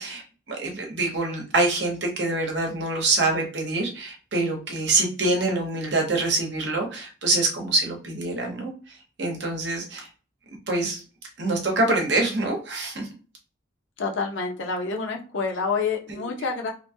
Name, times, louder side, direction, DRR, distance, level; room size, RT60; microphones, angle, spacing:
voice 1, 0.0-10.1 10.5-11.0 11.4-13.1 16.1-16.3, right 2 dB, 60° right, 1 dB, 0.9 m, -25 dB
voice 2, 14.0-16.7, left 4 dB, 75° left, 1 dB, 0.8 m, -28 dB
2.9 x 2.2 x 2.7 m, 0.37 s
head